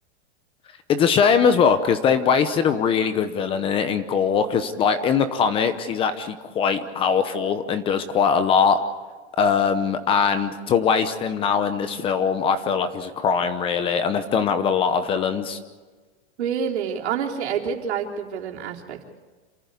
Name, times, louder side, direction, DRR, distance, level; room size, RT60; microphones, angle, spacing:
voice 1, 0.9-8.8 9.4-15.6, left 6 dB, 15° left, 11 dB, 0.8 m, -21 dB
voice 2, 16.4-19.0, right 7 dB, 80° right, -1 dB, 3.8 m, -27 dB
27.5 x 14.5 x 8.4 m, 1.4 s
supercardioid pair, 165°, 33 cm